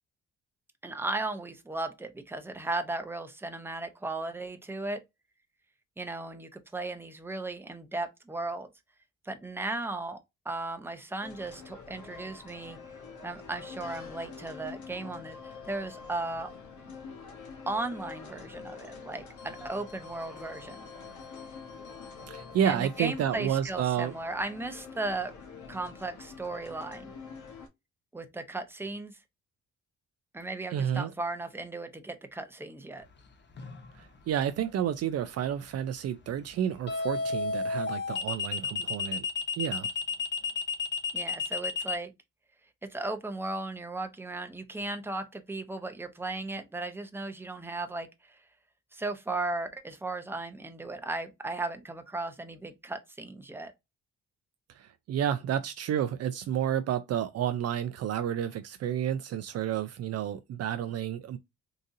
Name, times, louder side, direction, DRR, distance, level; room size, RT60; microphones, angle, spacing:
voice 1, 0.8-5.0 6.0-8.7 9.2-10.2 10.4-12.8 13.2-16.5 17.7-20.8 22.6-25.3 25.7-27.1 28.1-29.1 30.3-33.0 41.1-42.1 42.9-48.4 48.9-53.7, right 2 dB, 5° right, 0.7 m, -36 dB
sound 1, 11.2-27.7, left 5 dB, 80° left, 1.0 m, -46 dB
voice 2, 22.3-24.1 30.7-31.1 34.0-39.3 39.6-39.9 54.8-61.4, right 9 dB, 55° right, 0.4 m, -30 dB
sound 2, 33.6-33.9 36.9-42.0, left 5 dB, 35° left, 0.8 m, -31 dB
3.8 x 2.6 x 2.6 m
cardioid pair, 90°, 30 cm